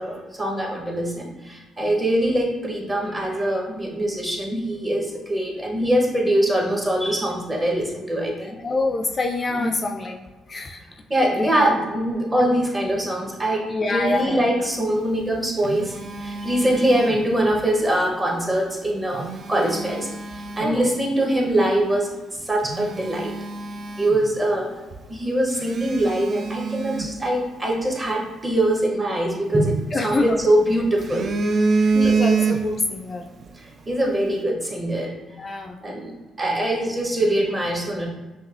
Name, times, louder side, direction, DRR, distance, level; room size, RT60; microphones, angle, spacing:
voice 1, 0.0-8.6 9.5-9.7 11.1-22.1 22.4-23.3 24.0-24.7 25.1-32.2 33.6-35.1 35.8-38.1, right 1 dB, 20° right, -1 dB, 1.0 m, -23 dB
voice 2, 8.4-10.2 10.5-10.8 11.4-11.7 13.7-14.5 16.7-16.8 20.6-20.9 29.9-30.4 31.9-33.2 35.4-35.8, left 2 dB, 35° left, 3 dB, 0.3 m, -26 dB
Telephone, 15.1-17.7 18.9-20.8 21.4-21.6 22.1-22.2 22.6-24.7 24.9-25.0 25.5-27.9 29.5-30.4 30.8-33.0 33.3-33.5, right 4 dB, 50° right, 0.3 m, -26 dB
5.3 x 2.7 x 2.5 m, 1.2 s
cardioid pair, 90°, 0 cm